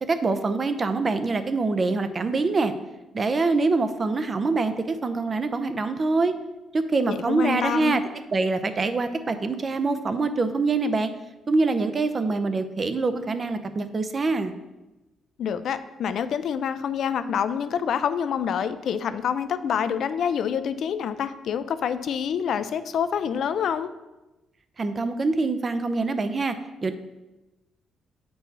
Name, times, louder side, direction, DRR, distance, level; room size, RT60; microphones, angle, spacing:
voice 1, 0.0-2.7 3.1-6.4 6.7-8.0 8.3-11.1 11.5-14.5 24.8-26.5 26.8-26.9, right 3 dB, 35° right, 10 dB, 0.6 m, -24 dB
voice 2, 7.1-8.0 15.4-23.9, left 8 dB, 65° left, 12 dB, 0.4 m, -27 dB
7.9 x 4.6 x 4.0 m, 1.0 s
cardioid pair, 90°, 0 cm